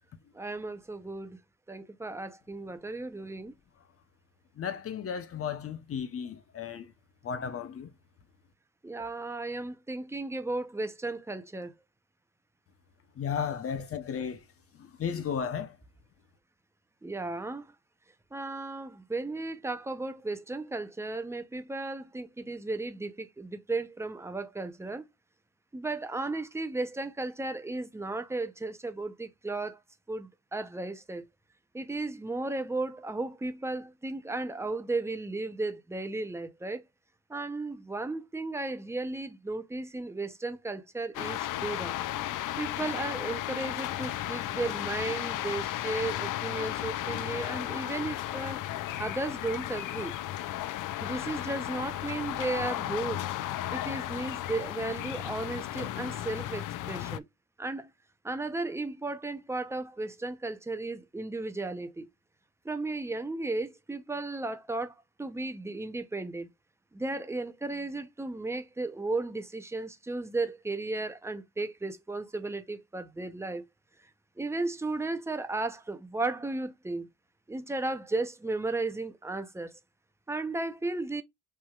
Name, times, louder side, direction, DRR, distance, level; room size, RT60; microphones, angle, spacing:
voice 1, 0.3-1.4 1.7-3.5 8.8-11.7 17.0-17.7 18.3-25.1 25.7-29.8 30.1-31.3 31.7-36.8 37.3-41.9 42.6-48.6 49.0-50.1 51.0-53.3 53.7-57.2 57.6-57.9 58.2-62.1 62.6-66.5 66.9-73.6 74.4-77.1 77.5-79.7 80.3-81.2, right 2 dB, 10° right, 0.7 m, -35 dB
voice 2, 4.6-6.9 7.2-7.9 13.2-14.4 14.8-15.7, left 7 dB, 45° left, 1.0 m, -34 dB
sound 1, 41.1-57.2, left 13 dB, 85° left, 0.6 m, -34 dB
6.0 x 3.5 x 2.4 m
cardioid pair, 125°, 31 cm